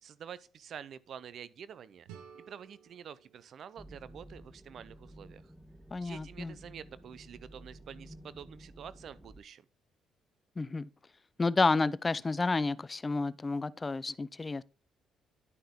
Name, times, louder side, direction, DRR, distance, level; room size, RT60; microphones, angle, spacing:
voice 1, 0.0-2.1 2.3-5.4 6.0-9.6, right 8 dB, 60° right, 0.6 m, -48 dB
sound 1, 2.1-4.9, right 8 dB, 80° right, 1.3 m, -56 dB
sound 2, 3.8-9.4, right 1 dB, ahead, 1.2 m, -53 dB
voice 2, 5.9-6.5 10.6-10.9 11.4-14.6, left 3 dB, 30° left, 0.4 m, -30 dB
10.5 x 5.5 x 3.6 m
supercardioid pair, 60°, 0 cm